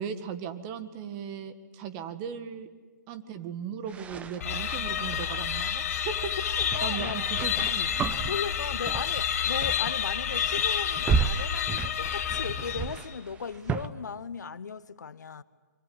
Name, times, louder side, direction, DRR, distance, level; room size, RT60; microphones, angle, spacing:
voice 1, 0.0-2.7 3.1-7.9, right 7 dB, 30° right, 1.8 m, -37 dB
sound 1, 3.9-5.7 6.6-9.3 9.6-10.0 10.2-13.9, right 5 dB, 15° right, 0.9 m, -33 dB
sound 2, 4.4-13.1, left 9 dB, 50° left, 2.1 m, -29 dB
voice 2, 6.7-7.3 8.3-15.4, left 6 dB, 70° left, 1.1 m, -37 dB
25.0 x 24.0 x 9.8 m
figure-of-eight pair, 135°, 10 cm